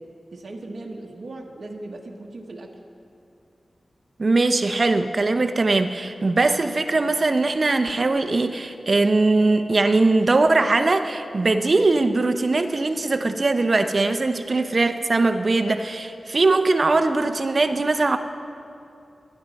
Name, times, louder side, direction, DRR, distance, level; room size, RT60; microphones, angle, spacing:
voice 1, 0.0-2.8, right 2 dB, 65° right, 1 dB, 1.3 m, -38 dB
voice 2, 4.2-18.2, right 3 dB, 45° right, 8 dB, 0.8 m, -21 dB
21.5 x 11.0 x 4.2 m, 2.6 s
wide cardioid pair, 80°, 0 cm